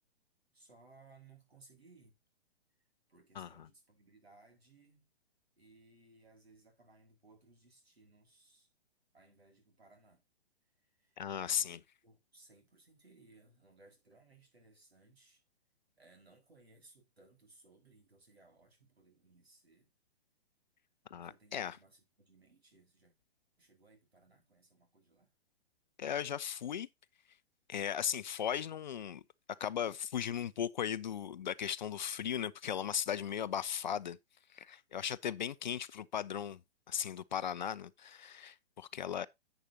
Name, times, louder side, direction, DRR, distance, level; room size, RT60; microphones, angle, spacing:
voice 1, 0.5-2.1 3.1-5.1 5.6-8.7 9.1-10.2 10.8-15.4 16.0-19.9 21.2-23.1 23.6-25.3, right 3 dB, 70° right, 4.9 m, -63 dB
voice 2, 3.4-3.7 11.2-11.8 21.1-21.8 26.0-26.9 27.7-29.2 29.6-34.2 34.5-36.6 36.9-39.3, left 9 dB, 45° left, 0.6 m, -37 dB
11.0 x 7.9 x 2.8 m
figure-of-eight pair, 120°, 32 cm